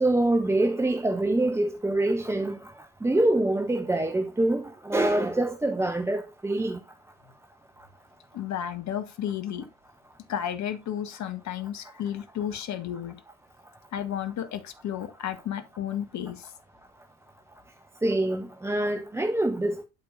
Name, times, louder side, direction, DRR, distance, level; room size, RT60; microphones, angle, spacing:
voice 1, 0.0-2.6 3.0-6.8 18.0-19.8, right 1 dB, 5° right, 0.6 m, -25 dB
voice 2, 8.3-9.6 10.3-13.2 13.9-16.5, left 10 dB, 40° left, 1.1 m, -32 dB
11.5 x 4.3 x 2.4 m
figure-of-eight pair, 60°, 43 cm